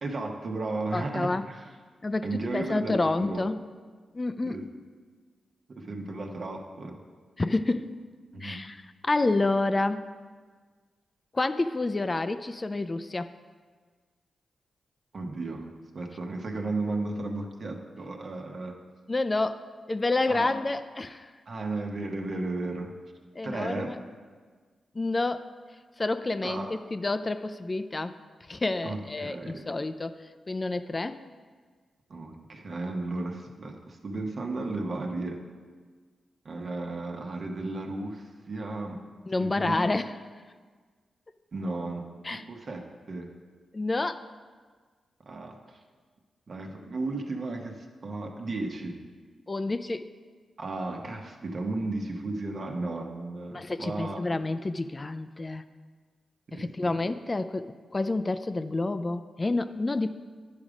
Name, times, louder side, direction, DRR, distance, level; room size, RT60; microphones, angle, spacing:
voice 1, 0.0-1.7 2.2-3.5 4.4-4.6 5.7-7.0 8.3-8.6 15.1-15.7 15.9-18.8 20.3-20.6 21.5-22.9 23.4-23.9 26.4-26.7 28.8-29.6 32.1-35.4 36.4-39.0 39.4-39.8 41.5-43.3 45.2-45.8 46.5-49.0 50.6-54.2 56.5-57.0, right 2 dB, 55° right, 2 dB, 1.1 m, -34 dB
voice 2, 0.9-1.5 2.0-2.3 2.5-3.6 4.1-4.6 7.4-8.0 8.4-8.8 9.0-10.1 11.3-13.3 19.1-19.6 19.9-21.3 23.4-24.0 24.9-25.5 26.0-28.2 28.5-31.2 39.3-40.1 42.2-42.4 43.7-44.3 49.5-50.1 53.5-55.6 56.5-60.1, left 2 dB, 30° left, 11 dB, 0.4 m, -29 dB
10.5 x 5.2 x 4.9 m, 1.5 s
cardioid pair, 60°, 0 cm